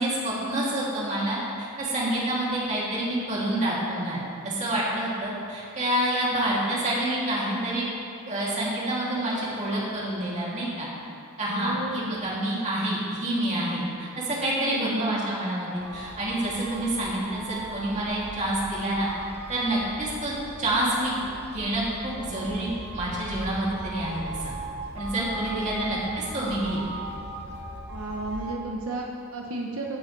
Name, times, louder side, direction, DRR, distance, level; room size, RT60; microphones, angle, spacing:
voice 1, 0.0-4.2 4.4-7.8 8.3-10.9 11.4-19.1 19.5-20.3 20.6-21.2 21.5-24.5 24.9-26.8, right 1 dB, 35° right, -6 dB, 2.7 m, -28 dB
voice 2, 11.5-12.2 14.6-15.2 25.3-26.0 27.9-30.0, right 2 dB, 80° right, 0 dB, 0.9 m, -33 dB
sound 1, 15.8-28.6, right 2 dB, 55° right, 0.9 m, -38 dB
16.5 x 8.3 x 3.3 m, 2.5 s
head